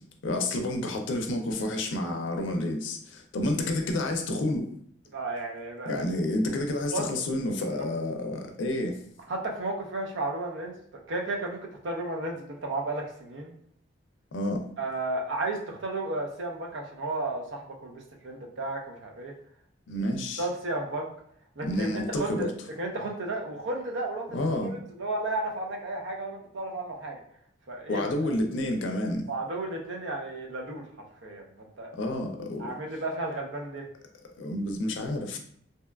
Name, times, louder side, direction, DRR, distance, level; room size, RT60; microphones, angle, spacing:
voice 1, 0.2-4.7 5.9-9.0 14.3-14.6 19.9-20.4 21.6-22.5 24.3-24.7 27.9-29.3 31.9-32.7 34.4-35.4, left 1 dB, 75° left, 4 dB, 0.4 m, -29 dB
voice 2, 5.1-6.0 6.7-7.1 7.8-8.0 9.3-13.5 14.8-19.3 20.4-21.1 21.6-22.5 22.8-27.2 27.7-28.4 29.3-30.8 31.2-31.9 32.6-33.9, right 2 dB, 75° right, 1 dB, 0.5 m, -33 dB
2.7 x 2.2 x 2.2 m, 0.65 s
head